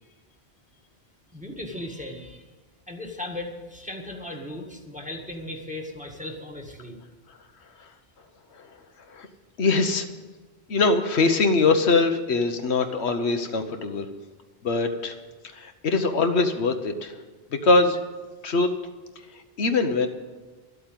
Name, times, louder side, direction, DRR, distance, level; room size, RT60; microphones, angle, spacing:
voice 1, 1.3-2.5 2.9-7.0, left 1 dB, 5° right, 2 dB, 1.8 m, -37 dB
voice 2, 9.6-10.1 10.7-14.1 14.6-15.1 15.4-17.1 17.5-18.0 18.4-18.7 19.6-20.1, left 3 dB, 80° left, 6 dB, 1.3 m, -22 dB
12.5 x 8.4 x 9.0 m, 1.2 s
omnidirectional pair, 1.1 m